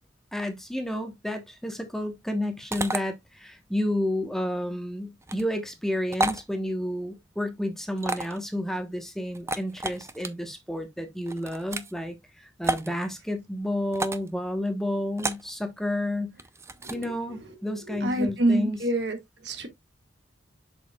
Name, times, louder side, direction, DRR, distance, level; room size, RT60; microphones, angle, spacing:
voice 1, 0.3-16.4 16.9-18.8, left 1 dB, ahead, 1.1 m, -31 dB
sound 1, 2.7-3.0 5.2-5.4 6.1-6.4 8.0-8.4 9.3-10.3 11.3-11.9 12.6-12.9 13.9-14.3 15.2-15.5 16.4-17.1, right 2 dB, 15° right, 0.6 m, -30 dB
voice 2, 17.9-19.2 19.4-19.7, right 1 dB, 65° right, 1.8 m, -26 dB
7.9 x 6.4 x 2.3 m
head